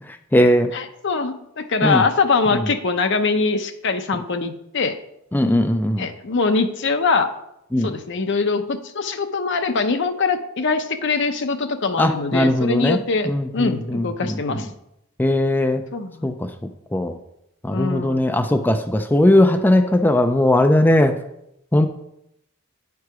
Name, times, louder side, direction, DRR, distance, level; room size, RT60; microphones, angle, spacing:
voice 1, 0.1-0.7 1.8-2.0 5.3-6.1 7.7-7.9 12.0-13.0 13.3-14.7 15.2-15.8 16.2-16.5 16.9-17.2 17.6-21.1 21.7-21.9, left 1 dB, 10° left, 6 dB, 0.4 m, -18 dB
voice 2, 0.7-5.0 6.0-7.3 7.8-14.7 15.9-16.3 17.7-18.2, left 4 dB, 60° left, 8 dB, 0.7 m, -23 dB
9.1 x 4.7 x 4.8 m, 0.81 s
head